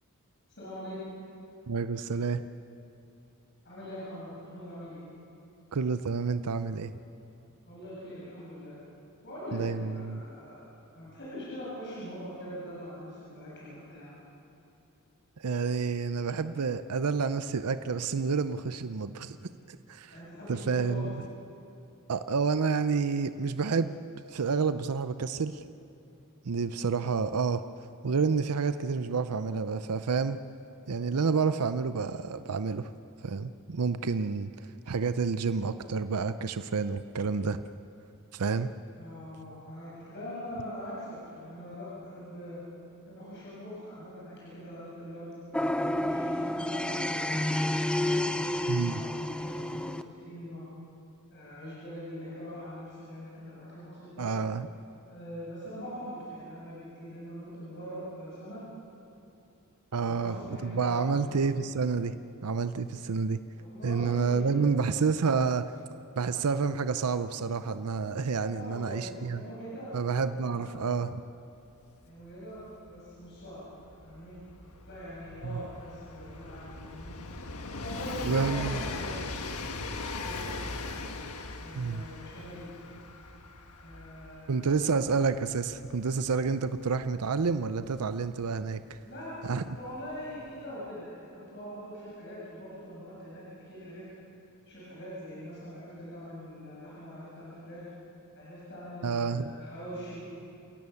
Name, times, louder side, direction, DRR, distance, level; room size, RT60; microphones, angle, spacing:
voice 1, 0.5-1.0 3.6-5.0 7.6-8.8 9.2-10.6 10.9-14.1 20.1-21.1 39.0-42.6 43.1-45.3 45.7-47.4 47.9-48.2 48.6-50.7 51.3-54.3 55.1-58.6 60.0-61.4 63.5-65.1 68.4-70.7 72.0-73.7 74.0-74.4 74.8-77.2 77.7-79.3 80.1-80.6 81.6-82.8 83.8-85.0 89.0-89.4 89.7-94.1 94.7-97.9 98.4-100.3, equal, 55° left, -8 dB, 7.4 m, -43 dB
voice 2, 1.7-2.4 5.7-6.9 9.5-10.2 15.4-19.4 19.7-20.2 20.5-21.1 22.1-24.0 24.3-25.6 26.4-27.6 28.0-30.4 30.9-32.9 33.2-37.6 38.3-38.7 48.7-49.0 54.2-54.7 59.9-60.4 60.6-62.2 62.4-63.4 63.8-65.7 66.2-69.4 69.9-71.2 75.4-75.6 78.2-78.8 81.7-82.0 84.5-89.0 89.4-89.6 99.0-99.5, right 5 dB, 90° right, 11 dB, 0.6 m, -29 dB
sound 1, 45.5-50.0, left 1 dB, 5° left, 0.6 m, -30 dB
Train, 71.7-71.8 72.0-88.6 89.6-89.7, left 3 dB, 75° left, 1.5 m, -40 dB
28.5 x 17.5 x 7.1 m, 2.8 s
head